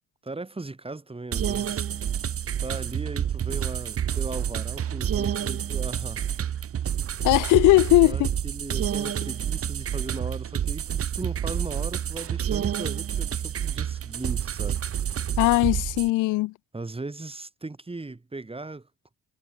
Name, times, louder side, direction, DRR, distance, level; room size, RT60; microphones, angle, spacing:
voice 1, 0.2-2.3 2.6-6.3 7.0-7.1 8.0-15.3 16.7-18.9, right 3 dB, 20° right, 6.0 m, -38 dB
sound 1, 1.3-16.1, right 9 dB, 50° right, 1.1 m, -29 dB
voice 2, 7.2-8.3 15.4-16.5, left 20 dB, 85° left, 0.5 m, -19 dB
cardioid pair, 90°, 30 cm